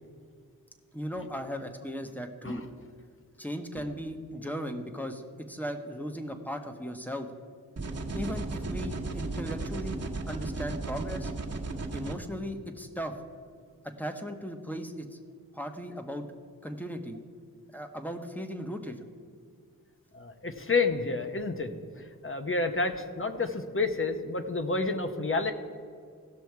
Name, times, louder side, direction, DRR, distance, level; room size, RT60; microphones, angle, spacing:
voice 1, 0.9-2.6 3.4-5.2 5.5-7.3 8.1-10.0 10.3-11.3 11.9-13.2 13.8-15.2 15.5-16.2 16.6-17.2 17.7-19.0, equal, 5° left, 5 dB, 1.2 m, -37 dB
sound 1, 7.8-12.1, right 2 dB, 45° right, 1.4 m, -35 dB
voice 2, 20.1-21.7 22.0-25.5, left 3 dB, 35° left, 6 dB, 1.0 m, -29 dB
16.0 x 6.2 x 4.7 m, 2.1 s
cardioid pair, 55°, 35 cm